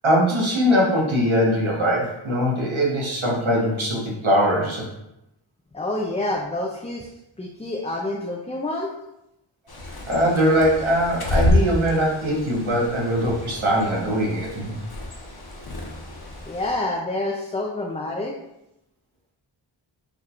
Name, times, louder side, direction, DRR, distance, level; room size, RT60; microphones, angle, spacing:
voice 1, 0.0-4.9 10.1-14.7, equal, 75° right, -3 dB, 1.3 m, -21 dB
voice 2, 5.7-7.1 7.4-8.9 16.5-18.4, left 2 dB, 15° left, -1 dB, 0.4 m, -28 dB
Bird, 9.7-16.7, left 2 dB, 50° left, 0.9 m, -28 dB
5.4 x 3.4 x 2.4 m, 0.87 s
wide cardioid pair, 50°, 48 cm